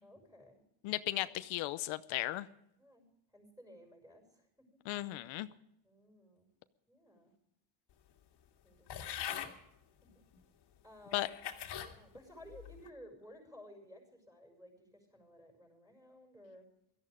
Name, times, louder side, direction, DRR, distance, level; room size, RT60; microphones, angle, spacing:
voice 1, 0.0-0.6 0.9-1.3 2.8-3.0 3.3-4.7 5.8-6.5 6.9-7.3 8.6-9.3 10.1-10.2 10.8-11.3 11.8-16.6, equal, 10° right, 2 dB, 6.4 m, -56 dB
voice 2, 0.8-2.5 4.9-5.5 11.1-11.3, left 17 dB, 80° left, 13 dB, 0.8 m, -36 dB
sound 1, 8.9-9.5 10.3-10.4 11.1-11.9 12.5-12.9, left 9 dB, 55° left, 2.2 m, -42 dB
17.5 x 13.5 x 5.1 m, 0.80 s
cardioid pair, 125°, 47 cm